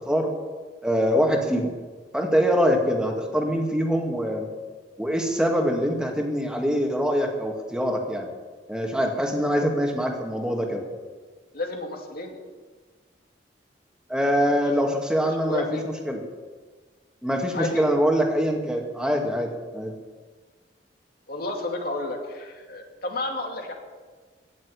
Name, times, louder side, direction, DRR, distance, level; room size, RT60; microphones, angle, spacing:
voice 1, 0.8-1.7 2.1-4.5 5.0-8.3 8.7-10.8 14.1-15.7 16.1-16.2 17.2-19.9, equal, 5° right, 1 dB, 2.1 m, -24 dB
voice 2, 11.5-12.4 14.3-14.7 15.4-15.8 17.5-17.8 21.3-23.7, left 2 dB, 60° left, 2 dB, 2.5 m, -32 dB
17.0 x 7.3 x 9.8 m, 1.4 s
head